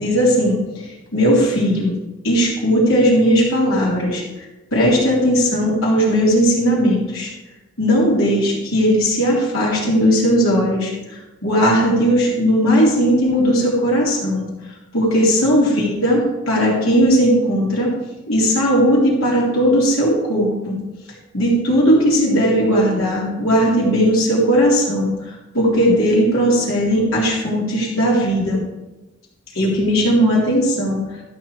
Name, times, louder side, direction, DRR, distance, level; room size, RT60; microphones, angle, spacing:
voice 1, 0.0-1.9 2.2-4.2 4.7-7.3 7.8-14.5 14.9-17.9 18.3-20.8 21.3-28.6 29.5-31.0, equal, 75° left, -5 dB, 3.8 m, -17 dB
13.0 x 6.0 x 4.6 m, 1.1 s
head